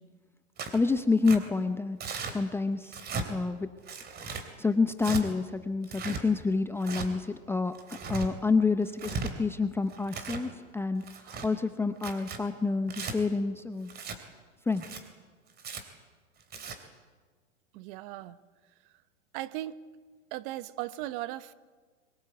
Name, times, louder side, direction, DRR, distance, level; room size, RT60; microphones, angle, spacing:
Tearing, 0.6-0.8 1.2-1.4 2.0-2.3 2.9-3.3 3.9-4.4 5.0-5.2 5.8-6.2 6.8-7.1 7.7-8.3 8.9-9.3 9.9-10.4 11.0-11.5 12.0-12.4 12.9-13.1 13.9-14.2 14.7-15.0 15.6-15.8 16.4-16.8, right 4 dB, 25° right, 3.1 m, -37 dB
voice 1, 0.7-2.0 2.3-3.0 3.3-3.7 4.6-7.7 8.1-11.1 11.4-13.9 14.7-15.0, left 4 dB, 5° left, 10 dB, 0.6 m, -28 dB
voice 2, 17.7-18.4 19.3-19.8 20.3-21.5, right 15 dB, 40° right, 15 dB, 1.1 m, -37 dB
23.0 x 21.5 x 8.1 m, 1.4 s
hypercardioid pair, 120°, 39 cm